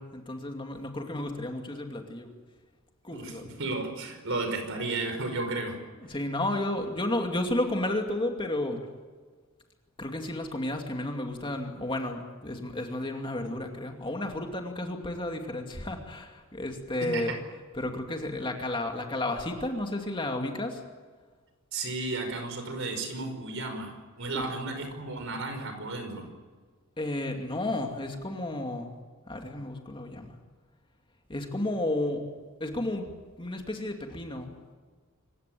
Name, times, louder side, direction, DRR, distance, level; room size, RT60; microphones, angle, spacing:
voice 1, 0.0-2.3 3.0-3.5 6.0-8.8 10.0-17.3 17.7-20.8 24.3-24.5 27.0-28.9 29.3-30.4 31.3-32.2 32.6-33.0 33.4-34.5, left 1 dB, 25° left, 3 dB, 2.5 m, -32 dB
voice 2, 3.1-5.8 17.0-17.2 21.7-26.3, right 3 dB, 60° right, 6 dB, 5.4 m, -33 dB
26.5 x 15.5 x 9.3 m, 1.5 s
head